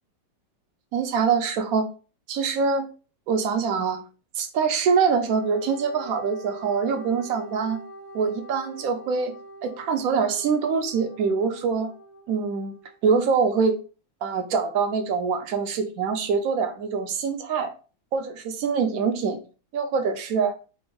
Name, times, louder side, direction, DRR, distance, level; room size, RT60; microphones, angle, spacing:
voice 1, 0.9-1.9 2.3-2.9 3.3-4.0 4.4-7.8 8.1-9.3 9.6-11.9 12.3-12.7 13.0-13.8 14.2-17.7 18.1-19.4 19.7-20.5, right 5 dB, 70° right, 0.8 m, -24 dB
Wind instrument woodwind instrument, 5.2-12.9, right 1 dB, 65° left, 1.1 m, -44 dB
4.3 x 2.0 x 4.5 m
omnidirectional pair, 2.1 m